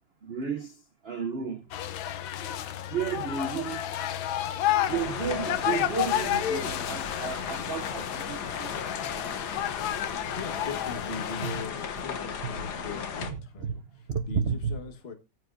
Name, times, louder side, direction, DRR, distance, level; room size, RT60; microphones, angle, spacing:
voice 1, 0.2-1.7 2.9-3.9 4.9-8.8 11.4-11.6 12.4-12.5 13.2-14.8, right 6 dB, 75° right, 0.5 m, -33 dB
sound 1, 1.7-11.6, left 11 dB, 85° left, 1.6 m, -31 dB
sound 2, 4.9-13.3, left 6 dB, 60° left, 1.6 m, -36 dB
voice 2, 10.3-15.1, left 4 dB, 35° left, 1.6 m, -40 dB
18.5 x 7.8 x 2.5 m
omnidirectional pair, 2.1 m